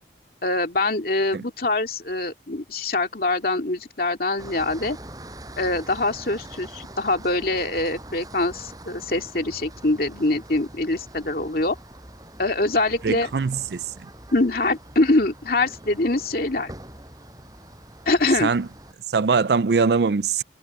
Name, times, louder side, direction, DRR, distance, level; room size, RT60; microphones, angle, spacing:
voice 1, 0.4-5.0 5.6-11.8 12.4-13.3 14.3-16.7 18.1-18.5, left 2 dB, 55° left, 2.5 m, -24 dB
sound 1, 4.4-18.9, right 1 dB, 20° right, 7.9 m, -43 dB
voice 2, 13.0-14.1 18.4-18.7 19.1-20.4, right 5 dB, 65° right, 0.5 m, -22 dB
head